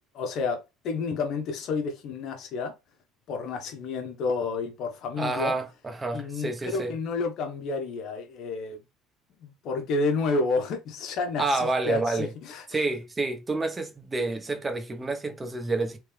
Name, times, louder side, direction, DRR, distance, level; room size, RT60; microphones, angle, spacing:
voice 1, 0.1-2.7 3.3-5.6 6.1-8.8 9.4-12.8, left 4 dB, 60° left, 1.2 m, -30 dB
voice 2, 5.2-6.9 11.4-12.3 12.7-16.0, right 3 dB, 25° right, 1.2 m, -29 dB
3.5 x 3.3 x 3.3 m
hypercardioid pair, 60°, 0 cm